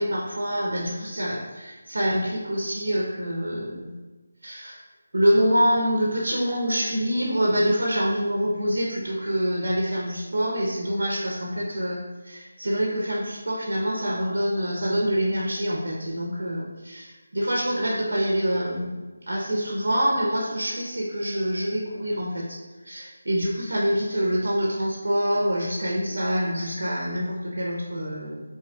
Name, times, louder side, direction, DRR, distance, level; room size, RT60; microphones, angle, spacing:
voice 1, 0.0-3.9 4.4-4.8 5.1-19.0 19.3-22.6 22.8-28.4, equal, 80° right, -3 dB, 0.8 m, -26 dB
3.7 x 2.9 x 2.3 m, 1.3 s
figure-of-eight pair, 170°, 0 cm